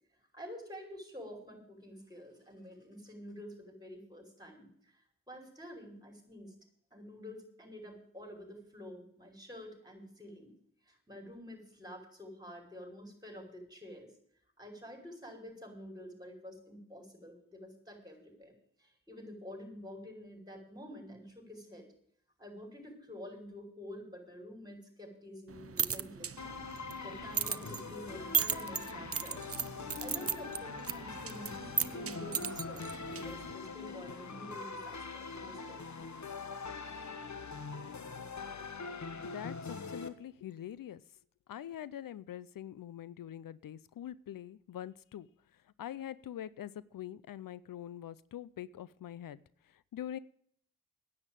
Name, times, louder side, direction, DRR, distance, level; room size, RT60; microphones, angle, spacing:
voice 1, 0.3-6.5 6.9-10.5 10.9-14.1 14.6-18.5 18.8-21.9 22.4-26.6 27.0-29.4 30.0-35.8, equal, 10° right, 2 dB, 5.5 m, -49 dB
sound 1, 25.5-33.5, right 7 dB, 45° right, 0.6 m, -37 dB
sound 2, 26.4-40.1, left 4 dB, 60° left, 1.3 m, -43 dB
voice 2, 39.2-41.0 41.5-49.4 49.6-50.2, left 11 dB, 85° left, 19 dB, 0.5 m, -44 dB
9.9 x 8.7 x 9.0 m, 0.67 s
cardioid pair, 40°, 33 cm